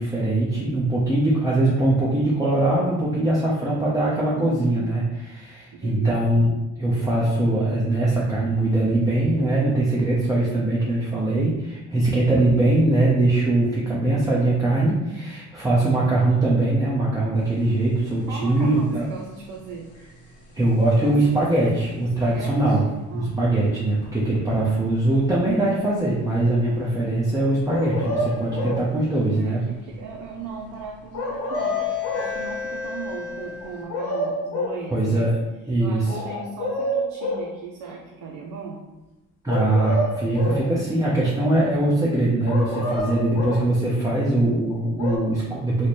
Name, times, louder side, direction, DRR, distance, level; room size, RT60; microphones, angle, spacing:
voice 1, 0.0-6.5 6.8-19.1 20.5-22.8 23.1-29.6 34.9-35.4 35.7-36.2 39.4-45.9, right 2 dB, 10° right, -7 dB, 0.7 m, -21 dB
voice 2, 4.4-4.9 5.7-6.4 18.3-19.9 21.0-21.8 22.2-22.8 23.1-23.5 28.5-31.8 32.1-35.3 35.8-38.8, right 5 dB, 85° right, 0 dB, 0.5 m, -38 dB
sound 1, 17.4-33.9, left 7 dB, 50° left, 0.9 m, -39 dB
sound 2, 27.7-28.9 31.1-32.3 33.6-34.8 36.1-37.5 39.5-40.7 42.5-43.7 44.7-45.2, left 1 dB, 90° left, 0.9 m, -27 dB
3.2 x 2.1 x 4.2 m, 1.0 s
cardioid pair, 90°, 30 cm